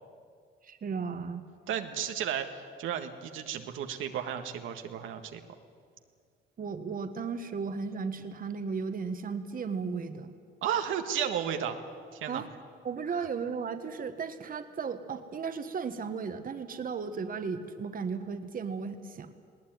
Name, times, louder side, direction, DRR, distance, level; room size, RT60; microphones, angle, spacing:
voice 1, 0.6-1.5 6.6-10.3 12.3-12.5 12.8-19.3, right 5 dB, 45° right, 8 dB, 1.4 m, -35 dB
voice 2, 1.7-5.4 10.6-11.8 12.1-12.4 13.2-13.3, right 9 dB, 85° right, 5 dB, 1.6 m, -33 dB
20.0 x 18.0 x 9.4 m, 2.1 s
cardioid pair, 90°, 20 cm